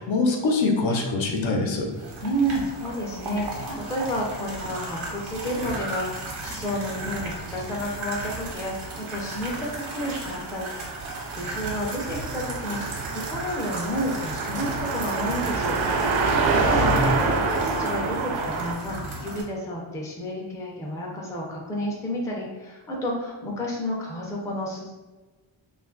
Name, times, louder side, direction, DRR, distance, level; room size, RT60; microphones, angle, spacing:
voice 1, 0.0-1.9 16.8-17.0, left 3 dB, 70° left, 1 dB, 0.7 m, -24 dB
sound 1, 1.9-19.4, right 2 dB, 85° right, 0.9 m, -35 dB
voice 2, 2.2-10.9 11.3-15.7 16.0-24.9, equal, 10° left, -2 dB, 0.3 m, -31 dB
Car passing by, 8.6-18.7, right 3 dB, 65° right, 0.5 m, -27 dB
2.5 x 2.4 x 3.7 m, 1.2 s
wide cardioid pair, 170°, 48 cm